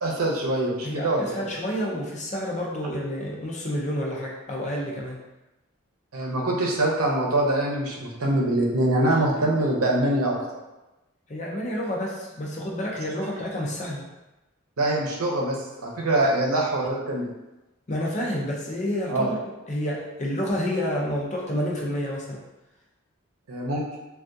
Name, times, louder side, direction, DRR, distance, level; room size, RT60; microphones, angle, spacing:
voice 1, 0.0-1.5 6.1-10.6 14.8-17.3 19.1-19.3 23.5-23.8, right 1 dB, 90° right, -2 dB, 0.7 m, -24 dB
voice 2, 0.8-5.2 11.3-14.0 17.9-19.4 19.7-22.4, equal, 35° left, -3 dB, 0.5 m, -29 dB
3.4 x 2.3 x 2.6 m, 1.0 s
head